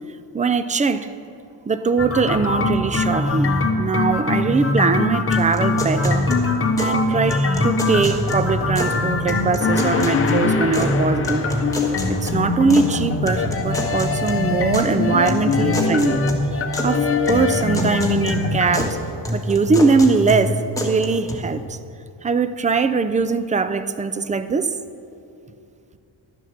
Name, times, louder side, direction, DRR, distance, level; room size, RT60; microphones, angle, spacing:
voice 1, 0.3-1.1 1.7-6.3 6.8-11.5 12.1-16.2 16.8-19.0 19.3-21.8 22.2-24.7, right 4 dB, 20° right, 12 dB, 0.4 m, -21 dB
sound 1, 2.0-18.9, left 3 dB, 30° left, 0.9 m, -22 dB
sound 2, 5.3-7.0 7.3-9.0 9.3-11.0 11.2-12.9 13.3-14.9 15.3-16.9 17.3-18.9 19.2-21.3, left 1 dB, 5° left, 1.5 m, -28 dB
11.5 x 7.4 x 6.6 m, 2.6 s
cardioid pair, 115°, 44 cm